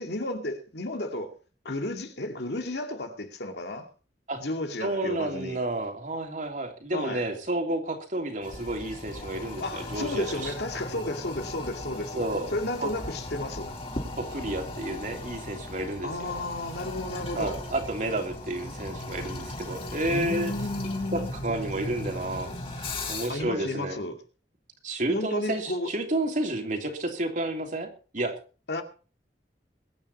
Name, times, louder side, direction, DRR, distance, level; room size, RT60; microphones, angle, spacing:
voice 1, 0.0-1.4 1.6-3.9 4.4-5.6 6.9-7.3 9.6-12.2 12.5-13.7 16.0-17.6 20.1-21.4 23.3-24.2 25.1-25.9 28.7-28.8, left 2 dB, 65° left, 2.3 m, -32 dB
voice 2, 4.8-10.5 12.1-12.5 12.8-12.9 14.2-16.4 17.3-20.5 21.1-22.5 23.1-24.0 24.8-28.3, right 1 dB, 45° right, 3.0 m, -31 dB
Toilet flush, 8.4-23.5, left 1 dB, 35° left, 4.2 m, -37 dB
22.0 x 9.7 x 4.2 m
head